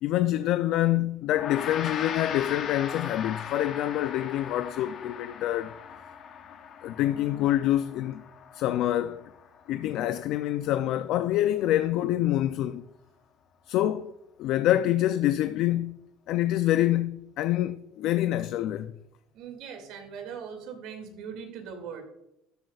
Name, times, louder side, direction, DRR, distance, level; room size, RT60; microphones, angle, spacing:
voice 1, 0.0-5.7 6.8-8.2 8.5-9.3 9.7-12.9 13.7-18.9, left 13 dB, 55° left, 0.4 m, -26 dB
Gong, 1.3-10.8, left 7 dB, 40° left, 0.9 m, -39 dB
voice 2, 19.3-22.0, right 7 dB, 60° right, 2.2 m, -40 dB
12.5 x 8.0 x 2.4 m
cardioid pair, 160°, 0 cm